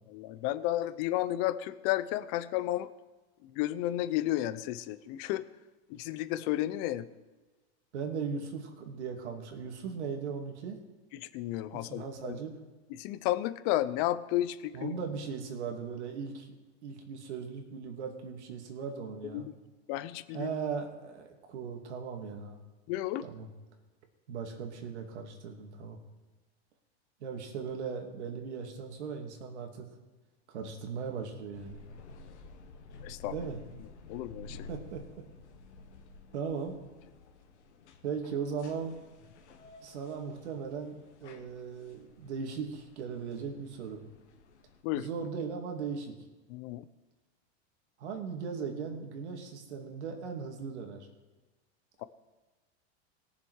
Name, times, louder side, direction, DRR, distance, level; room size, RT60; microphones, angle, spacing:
voice 1, 0.1-2.9 3.4-5.5 5.9-7.1 11.1-12.4 13.0-14.9 19.3-19.5 19.9-20.5 22.9-23.3 33.0-33.3 34.1-34.7 44.8-45.1 46.5-46.8, left 14 dB, 50° left, 14 dB, 0.8 m, -32 dB
voice 2, 7.9-10.8 11.7-12.6 14.7-16.5 16.8-19.5 20.3-22.6 23.2-23.5 24.3-26.0 27.2-29.9 30.5-31.8 33.3-33.6 34.7-35.2 36.3-36.8 38.0-38.9 39.8-44.1 44.9-46.1 48.0-51.1, right 6 dB, 85° right, 3 dB, 2.4 m, -38 dB
sound 1, 31.5-44.8, left 2 dB, 90° left, 1.6 m, -52 dB
18.0 x 7.0 x 4.8 m, 1.2 s
supercardioid pair, 130°, 33 cm